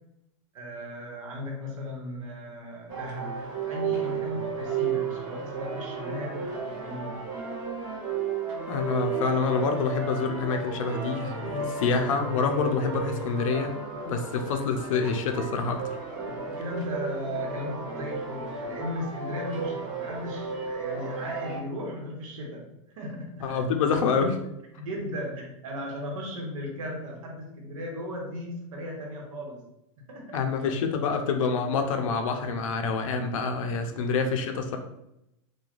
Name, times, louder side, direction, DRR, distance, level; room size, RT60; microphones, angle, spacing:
voice 1, 0.5-7.2 14.5-14.6 16.1-23.6 24.8-29.6 30.1-30.4 33.7-34.1 34.6-34.8, left 1 dB, 85° right, -1 dB, 1.0 m, -36 dB
sound 1, 2.9-21.6, right 5 dB, 55° right, 1.1 m, -34 dB
voice 2, 8.7-13.7 14.0-16.0 23.4-24.4 30.3-34.8, left 5 dB, 80° left, 5 dB, 0.5 m, -27 dB
3.1 x 2.2 x 2.4 m, 0.84 s
supercardioid pair, 135°, 17 cm